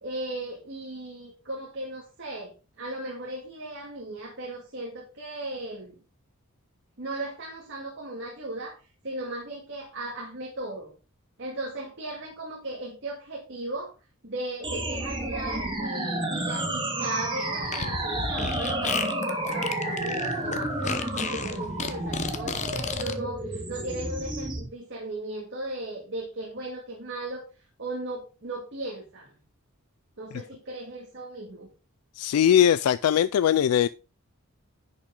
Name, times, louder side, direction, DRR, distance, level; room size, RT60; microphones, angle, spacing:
voice 1, 0.0-2.5 2.8-6.0 7.0-8.8 9.0-10.9 11.4-13.9 14.2-27.4 27.8-29.3 30.2-31.7, right 2 dB, 55° right, 2.2 m, -37 dB
sound 1, 14.6-24.6, right 1 dB, 20° right, 1.9 m, -31 dB
Fart, 17.6-23.1, left 5 dB, 35° left, 0.9 m, -32 dB
voice 2, 32.2-33.9, left 9 dB, 85° left, 0.3 m, -20 dB
10.5 x 5.8 x 3.7 m
head